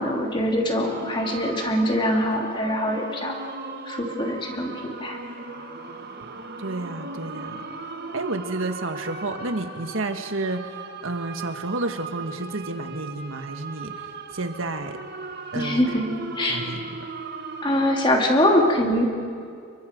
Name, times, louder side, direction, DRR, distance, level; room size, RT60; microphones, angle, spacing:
voice 1, 0.0-3.4 3.9-5.2 15.5-16.0 16.4-16.6 17.6-19.0, left 1 dB, 25° left, 1 dB, 2.9 m, -23 dB
sound 1, 0.8-18.3, right 3 dB, 50° right, 1.6 m, -37 dB
voice 2, 6.6-7.7 8.1-13.9 14.3-15.0 15.5-16.0 16.5-17.0, right 2 dB, 70° right, 7 dB, 1.6 m, -31 dB
30.0 x 22.5 x 5.3 m, 2.3 s
head